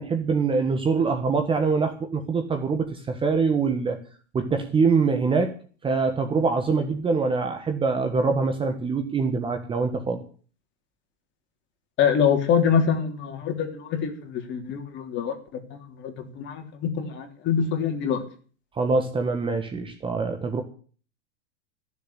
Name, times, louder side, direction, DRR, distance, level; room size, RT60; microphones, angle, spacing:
voice 1, 0.0-4.0 4.3-5.5 5.8-10.2 18.7-20.6, right 4 dB, 15° right, 7 dB, 1.4 m, -24 dB
voice 2, 12.0-18.2, left 7 dB, 30° left, 5 dB, 3.3 m, -25 dB
14.5 x 7.3 x 9.8 m, 0.42 s
supercardioid pair, 140°, 35 cm